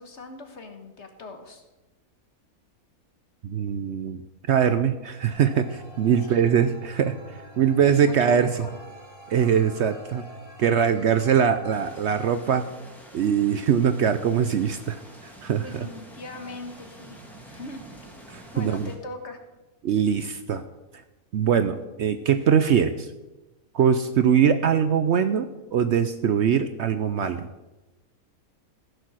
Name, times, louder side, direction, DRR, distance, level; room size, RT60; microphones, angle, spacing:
voice 1, 0.0-1.6 6.2-6.4 7.9-8.7 15.6-17.8 18.5-19.4, left 2 dB, 50° left, 6 dB, 1.6 m, -40 dB
voice 2, 3.4-4.2 4.5-7.1 7.6-8.5 9.3-10.2 10.6-12.6 13.1-15.0 15.2-15.6 18.3-18.9 19.8-20.6 21.3-23.1 23.7-27.5, right 8 dB, 60° right, 10 dB, 0.8 m, -22 dB
sound 1, 5.3-11.8, left 1 dB, 20° left, 2.2 m, -46 dB
sound 2, 11.7-19.0, right 1 dB, ahead, 2.0 m, -47 dB
15.0 x 6.8 x 6.2 m, 1.1 s
omnidirectional pair, 1.5 m